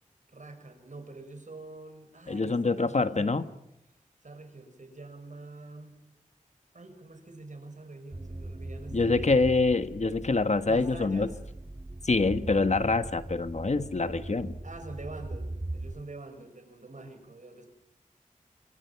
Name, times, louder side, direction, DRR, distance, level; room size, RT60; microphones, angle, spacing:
voice 1, 0.3-3.5 4.2-6.0 6.7-9.5 10.7-11.3 14.6-17.7, right 2 dB, 65° right, 7 dB, 5.8 m, -46 dB
voice 2, 2.3-3.4 8.9-11.3 12.0-14.6, left 3 dB, 55° left, 10 dB, 1.4 m, -25 dB
sound 1, 8.1-16.0, right 2 dB, 25° right, 1.2 m, -40 dB
27.5 x 23.5 x 5.9 m, 0.81 s
wide cardioid pair, 70°, 14 cm